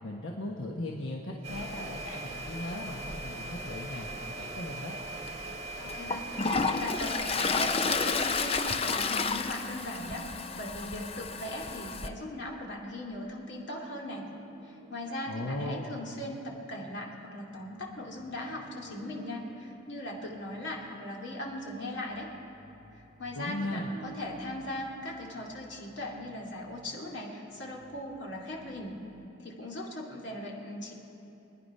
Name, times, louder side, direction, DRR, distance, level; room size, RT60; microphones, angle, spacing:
voice 1, 0.0-5.0 15.3-16.0 23.4-24.0, left 1 dB, 80° left, -1 dB, 1.2 m, -37 dB
sound 1, 1.4-8.8, right 2 dB, 30° right, 1.5 m, -40 dB
Toilet flush, 5.2-5.3 5.9-12.1, left 4 dB, 30° left, 0.5 m, -31 dB
voice 2, 5.7-14.3 14.6-22.3 22.9-29.0 29.4-30.9, left 1 dB, 60° left, -2 dB, 2.4 m, -39 dB
sound 2, 11.2-12.3 14.1-15.5 15.8-15.9 16.5-16.9 17.5-29.3, right 2 dB, 80° right, 1.8 m, -54 dB
25.0 x 9.9 x 5.5 m, 2.9 s
head